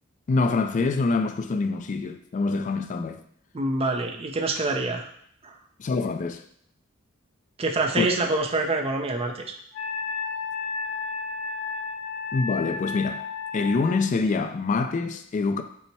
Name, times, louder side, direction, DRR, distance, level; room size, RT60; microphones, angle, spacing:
voice 1, 0.3-3.2 5.8-6.4 8.0-8.1 12.3-13.3 13.5-15.6, left 3 dB, 35° left, 0.3 m, -25 dB
voice 2, 3.5-5.1 5.4-5.5 7.6-9.4, right 2 dB, 30° right, 0.5 m, -26 dB
Wind instrument woodwind instrument, 9.7-14.0, left 5 dB, 65° left, 0.7 m, -32 dB
5.4 x 2.1 x 4.6 m
head